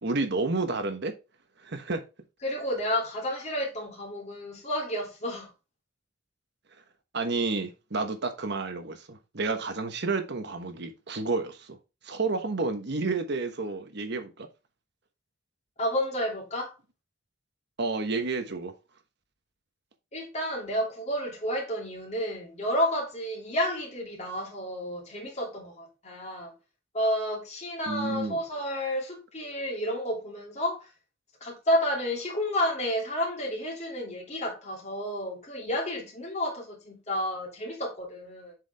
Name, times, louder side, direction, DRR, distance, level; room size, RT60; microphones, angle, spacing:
voice 1, 0.0-1.1 1.6-2.0 7.1-11.8 12.0-14.5 17.8-18.7 27.9-28.4, right 3 dB, 60° right, 1.2 m, -30 dB
voice 2, 2.4-5.5 15.8-16.8 20.1-26.5 26.9-30.9 31.4-38.5, equal, 35° left, 2.7 m, -31 dB
7.7 x 4.9 x 3.5 m
head